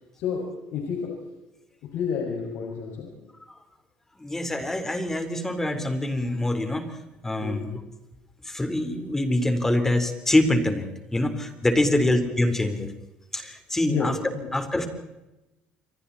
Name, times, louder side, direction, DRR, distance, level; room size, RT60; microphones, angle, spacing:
voice 1, 0.2-1.1 1.8-3.1 7.4-7.6 11.8-12.1 13.9-14.5, left 6 dB, 75° left, -1 dB, 6.3 m, -30 dB
voice 2, 4.2-6.8 7.2-7.8 8.5-10.9 11.1-12.9 13.3-14.2 14.5-14.9, left 1 dB, 10° left, 6 dB, 4.1 m, -24 dB
30.0 x 23.5 x 4.3 m, 1.0 s
cardioid pair, 110°, 4 cm